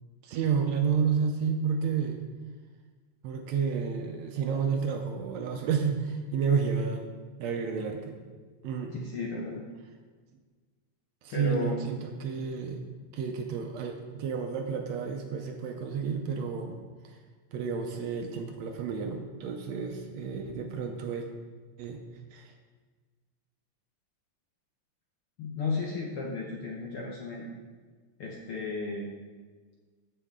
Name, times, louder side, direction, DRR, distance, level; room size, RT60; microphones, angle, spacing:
voice 1, 0.2-2.2 3.2-7.1 7.4-8.2 8.6-8.9 11.2-12.8 13.1-16.8 17.0-17.2 17.5-21.3 21.8-22.0 22.3-22.5, right 6 dB, 75° right, 4 dB, 1.8 m, -31 dB
voice 2, 8.9-9.6 11.3-11.8 25.4-27.5 28.2-29.1, left 3 dB, 65° left, -2 dB, 1.4 m, -34 dB
14.0 x 5.7 x 3.7 m, 1.5 s
omnidirectional pair, 3.4 m